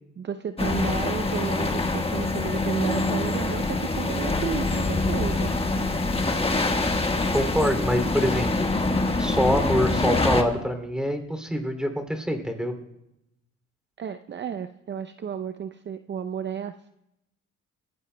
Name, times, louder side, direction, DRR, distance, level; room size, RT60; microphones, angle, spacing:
voice 1, 0.2-5.5 14.0-16.9, right 7 dB, 35° right, 10 dB, 0.5 m, -33 dB
sound 1, 0.6-10.4, left 2 dB, 20° left, 1.4 m, -25 dB
voice 2, 7.3-8.5 9.2-12.7, equal, 5° right, 5 dB, 2.7 m, -25 dB
24.0 x 16.5 x 2.2 m, 0.86 s
cardioid pair, 90°, 30 cm